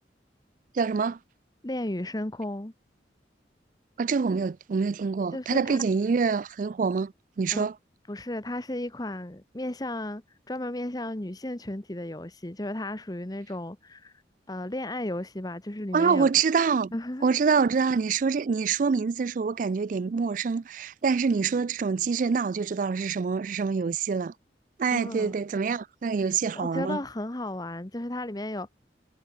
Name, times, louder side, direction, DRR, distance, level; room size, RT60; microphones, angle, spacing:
voice 1, 0.7-1.2 4.0-7.7 15.9-16.9 17.2-24.3 24.8-27.0, right 5 dB, 45° right, 0.3 m, -26 dB
voice 2, 1.6-2.7 5.3-5.8 7.5-7.7 8.1-10.2 10.5-14.1 14.5-16.3 16.9-17.3 24.9-25.3 26.2-26.3 26.5-28.7, left 1 dB, 20° left, 1.1 m, -34 dB
head